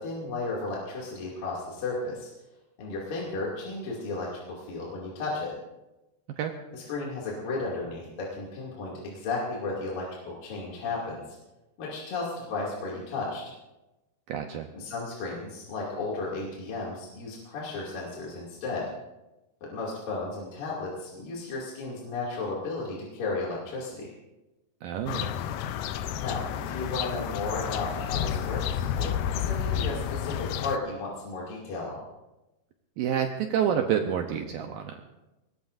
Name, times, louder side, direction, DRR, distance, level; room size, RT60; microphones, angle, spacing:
voice 1, 0.0-2.3 2.8-5.6 6.7-11.2 11.8-13.5 14.7-18.9 19.6-24.1 26.2-32.0, left 3 dB, 60° left, -5 dB, 4.1 m, -34 dB
voice 2, 14.3-14.7 24.8-25.3 33.0-34.9, right 8 dB, 75° right, 4 dB, 2.3 m, -28 dB
sound 1, 25.1-30.8, left 9 dB, 85° left, 1.9 m, -31 dB
23.5 x 19.5 x 2.6 m, 1.0 s
omnidirectional pair, 4.6 m